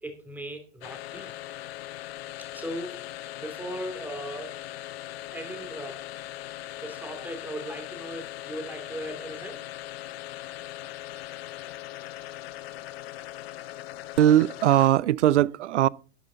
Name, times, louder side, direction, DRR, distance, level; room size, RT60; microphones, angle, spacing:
voice 1, 0.0-1.3 2.5-3.1 3.4-4.6 5.3-6.0 6.8-9.6, right 1 dB, 5° right, 2.8 m, -38 dB
sound 1, 0.8-15.1, left 14 dB, 55° left, 0.8 m, -40 dB
voice 2, 14.2-15.9, right 12 dB, 70° right, 0.6 m, -20 dB
12.0 x 9.8 x 4.0 m
hypercardioid pair, 120°, 37 cm